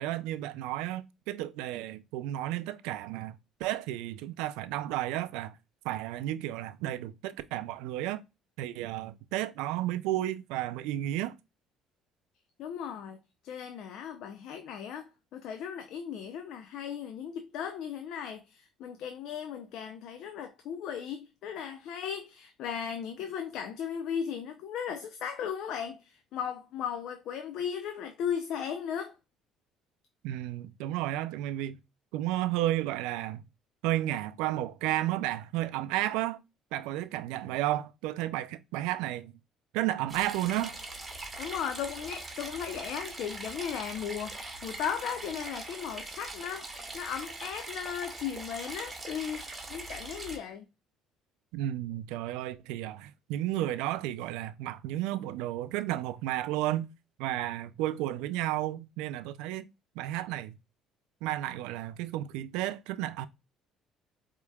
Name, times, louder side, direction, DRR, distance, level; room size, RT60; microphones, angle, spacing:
voice 1, 0.0-3.3 3.6-5.5 5.8-8.2 8.6-11.3 30.2-31.8 32.1-33.4 33.8-36.4 36.7-39.3 39.7-40.8 51.5-56.9 57.2-59.7 60.0-60.5 61.2-63.3, right 14 dB, 80° right, 0.3 m, -32 dB
voice 2, 12.6-13.2 13.4-29.2 41.4-50.7, left 8 dB, 70° left, 0.5 m, -36 dB
sound 1, 40.1-50.4, right 2 dB, 20° right, 1.2 m, -42 dB
4.5 x 2.9 x 2.2 m
supercardioid pair, 75°, 0 cm